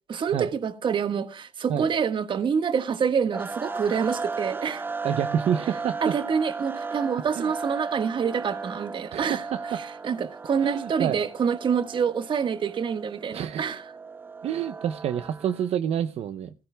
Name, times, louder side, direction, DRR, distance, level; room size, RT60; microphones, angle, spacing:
voice 1, 0.1-4.8 6.0-9.4 9.7-13.8, right 6 dB, 50° right, 1.5 m, -27 dB
sound 1, 3.3-15.7, right 4 dB, 20° right, 0.7 m, -36 dB
voice 2, 5.0-6.1 7.4-7.5 9.1-9.8 10.6-11.2 13.3-13.7 14.4-16.5, right 9 dB, 70° right, 0.8 m, -28 dB
16.5 x 16.0 x 2.3 m
cardioid pair, 115°, 11 cm